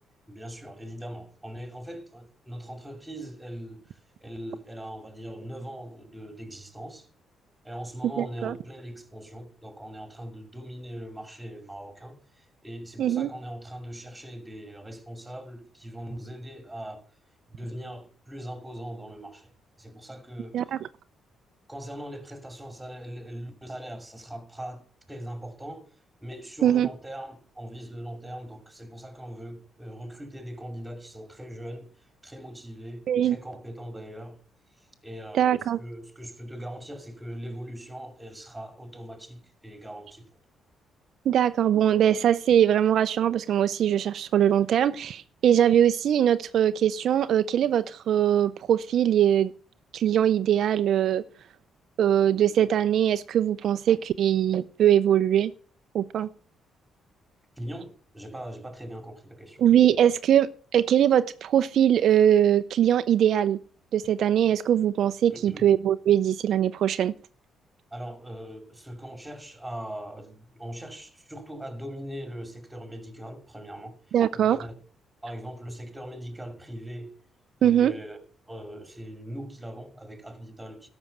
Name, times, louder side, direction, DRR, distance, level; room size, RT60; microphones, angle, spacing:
voice 1, 0.3-7.1 7.6-17.1 17.5-19.5 19.8-20.6 21.7-25.8 26.2-31.9 32.2-34.4 35.0-40.3 57.6-59.7 65.3-65.7 67.9-74.0 74.4-74.7 75.2-77.1 77.6-78.2 78.5-80.9, equal, 10° right, 2.5 m, -40 dB
voice 2, 8.2-8.5 13.0-13.3 20.5-20.8 26.6-26.9 33.1-33.4 35.3-35.8 41.3-49.5 49.9-51.2 52.0-55.5 55.9-56.3 59.6-63.6 63.9-67.1 74.1-74.6 77.6-77.9, right 10 dB, 70° right, 0.5 m, -22 dB
12.5 x 6.1 x 6.8 m
cardioid pair, 90°, 0 cm